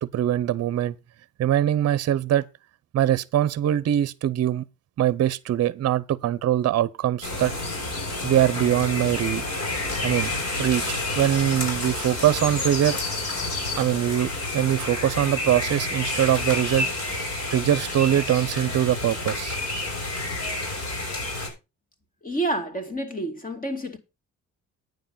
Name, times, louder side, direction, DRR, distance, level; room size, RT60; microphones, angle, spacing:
voice 1, 0.0-0.9 1.4-2.5 2.9-4.6 5.0-7.5 8.2-9.4 10.0-10.3 10.6-13.0 13.8-16.9 17.5-19.6, right 11 dB, 55° right, 0.7 m, -23 dB
sound 1, 7.2-21.5, left 2 dB, 60° left, 5.9 m, -29 dB
voice 2, 22.2-24.0, right 1 dB, 30° left, 2.5 m, -29 dB
9.5 x 7.1 x 5.5 m
cardioid pair, 90°, 30 cm